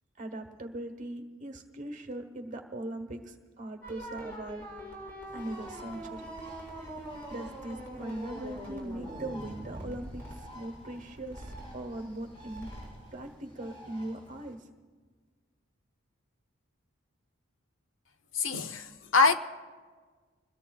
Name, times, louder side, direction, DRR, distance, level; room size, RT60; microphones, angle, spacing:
voice 1, 0.2-4.6 5.3-6.2 7.3-12.7 13.1-14.7, right 1 dB, 35° right, 1.2 m, -40 dB
sound 1, 3.8-13.0, right 1 dB, 10° left, 4.9 m, -43 dB
Bird, 5.3-14.5, equal, 25° left, 3.8 m, -51 dB
voice 2, 18.3-19.4, left 4 dB, 65° left, 0.7 m, -24 dB
26.5 x 21.5 x 2.3 m
head